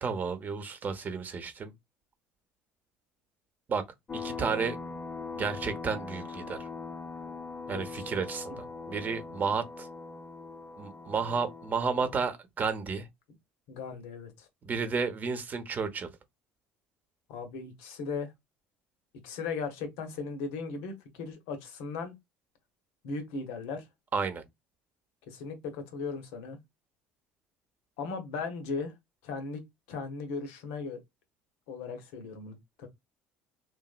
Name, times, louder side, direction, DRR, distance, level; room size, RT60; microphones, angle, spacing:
voice 1, 0.0-1.7 3.7-3.9 4.1-4.8 5.3-6.7 7.7-9.9 10.8-13.1 14.6-16.1 24.1-24.4, right 5 dB, 40° right, 0.8 m, -32 dB
sound 1, 4.1-12.3, left 4 dB, 25° left, 0.6 m, -41 dB
voice 2, 13.7-14.5 17.3-18.3 19.2-22.1 23.0-23.8 25.3-26.6 28.0-28.9 29.2-29.6 29.9-31.0 31.7-32.9, left 4 dB, 75° left, 0.9 m, -37 dB
2.9 x 2.5 x 2.4 m
hypercardioid pair, 75°, 5 cm